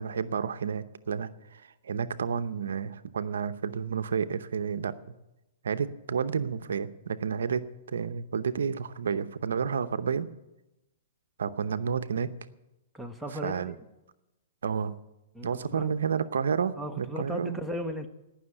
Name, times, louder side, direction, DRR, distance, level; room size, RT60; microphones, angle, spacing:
voice 1, 0.0-4.9 5.6-10.3 11.4-12.3 13.4-13.7 14.6-15.0 15.4-17.6, right 6 dB, 85° right, 11 dB, 0.8 m, -30 dB
voice 2, 12.9-13.7 15.3-16.0 16.8-18.1, equal, ahead, 3 dB, 1.1 m, -36 dB
17.5 x 6.4 x 10.0 m, 0.95 s
hypercardioid pair, 140°, 0 cm